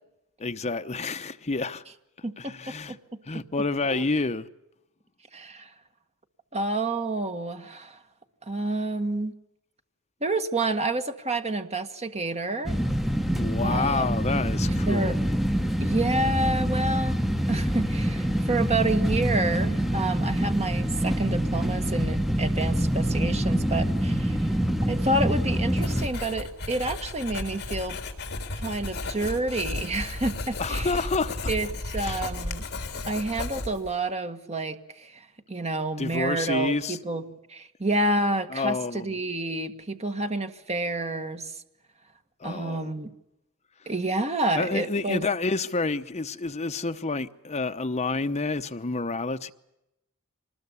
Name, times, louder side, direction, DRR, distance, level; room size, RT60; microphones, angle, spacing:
voice 1, 0.4-1.8 2.4-3.0 3.3-4.5 13.4-15.2 30.6-31.5 32.0-32.3 36.0-37.0 38.5-39.2 42.4-43.1 44.6-49.5, left 3 dB, 30° left, 0.9 m, -29 dB
voice 2, 5.3-5.7 6.5-8.0 8.4-9.3 10.2-12.8 13.6-14.1 14.9-15.2 15.8-17.2 17.5-24.5 24.9-28.0 28.5-30.9 31.5-31.7 31.9-32.6 33.0-37.2 37.5-41.5 42.4-43.1 43.9-45.2, right 2 dB, 30° right, 1.6 m, -29 dB
sound 1, 12.7-26.1, equal, ahead, 1.0 m, -25 dB
Writing, 25.8-34.0, left 2 dB, 50° left, 3.5 m, -34 dB
25.0 x 20.5 x 8.4 m
head